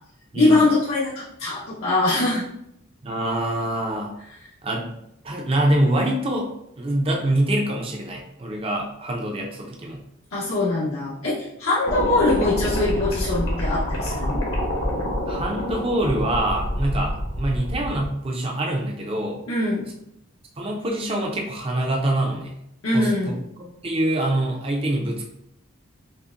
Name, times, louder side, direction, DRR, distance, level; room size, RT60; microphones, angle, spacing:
voice 1, 0.3-2.4 10.3-14.4 19.5-19.8 22.8-23.4, left 2 dB, 80° left, -8 dB, 0.9 m, -22 dB
voice 2, 3.0-4.1 4.6-4.9 5.2-6.5 6.8-10.0 15.3-19.4 20.6-22.5 22.9-23.1 23.6-25.2, right 1 dB, 25° right, 0 dB, 0.5 m, -25 dB
sound 1, 11.9-18.1, equal, 60° left, 1.0 m, -27 dB
5.4 x 2.1 x 2.5 m, 0.77 s
head